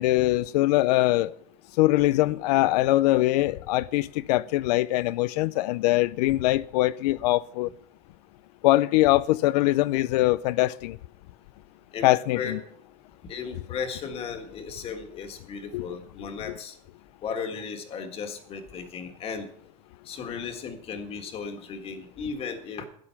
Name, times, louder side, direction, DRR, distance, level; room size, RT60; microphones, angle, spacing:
voice 1, 0.0-1.3 1.8-7.7 8.6-11.0 12.0-12.6 15.7-15.9, left 17 dB, 90° left, 0.5 m, -22 dB
voice 2, 13.2-16.8 17.2-19.5 20.0-22.8, left 6 dB, 30° left, 1.7 m, -35 dB
13.0 x 10.0 x 5.8 m
supercardioid pair, 165°, 20 cm